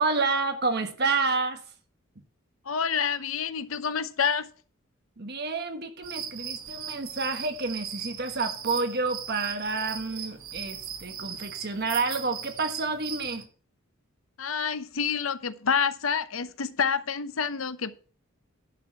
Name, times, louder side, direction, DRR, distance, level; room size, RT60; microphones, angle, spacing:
voice 1, 0.0-1.6 5.2-13.4, right 3 dB, 50° right, 1.4 m, -29 dB
voice 2, 2.6-4.5 14.4-18.0, left 6 dB, 85° left, 0.8 m, -28 dB
sound 1, 6.0-13.4, right 8 dB, 85° right, 1.4 m, -38 dB
10.5 x 4.7 x 7.4 m
head